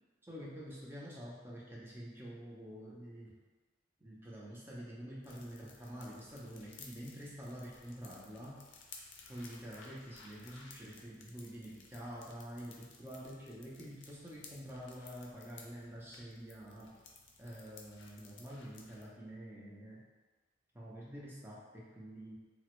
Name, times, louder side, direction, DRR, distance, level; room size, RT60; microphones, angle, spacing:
voice 1, 0.2-3.3 4.0-8.6 9.3-16.9 17.4-20.0 20.7-22.3, equal, 10° right, -6 dB, 0.5 m, -47 dB
sound 1, 5.2-19.1, left 4 dB, 85° left, 0.5 m, -57 dB
3.2 x 2.1 x 2.9 m, 1.4 s
head